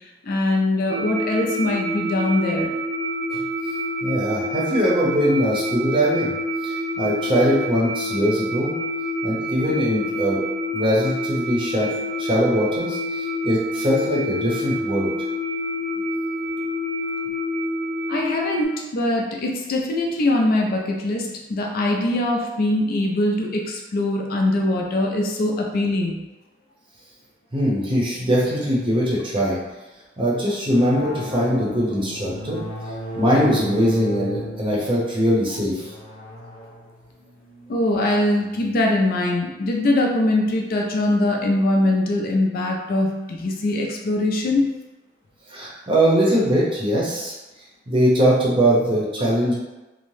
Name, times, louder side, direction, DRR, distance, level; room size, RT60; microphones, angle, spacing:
voice 1, 0.2-2.7 18.1-26.2 37.7-44.6, left 1 dB, 50° left, 0 dB, 0.4 m, -22 dB
sound 1, 0.9-18.7, equal, 65° right, 0.4 m, -27 dB
voice 2, 4.0-6.3 6.6-8.8 9.2-10.4 10.7-11.9 12.2-15.1 27.5-29.6 30.2-32.6 33.1-35.8 45.5-47.3 47.9-49.5, equal, 25° right, -5 dB, 0.7 m, -21 dB
sound 2, 30.7-38.8, right 1 dB, 25° left, 0.7 m, -34 dB
2.7 x 2.1 x 3.1 m, 1.1 s
head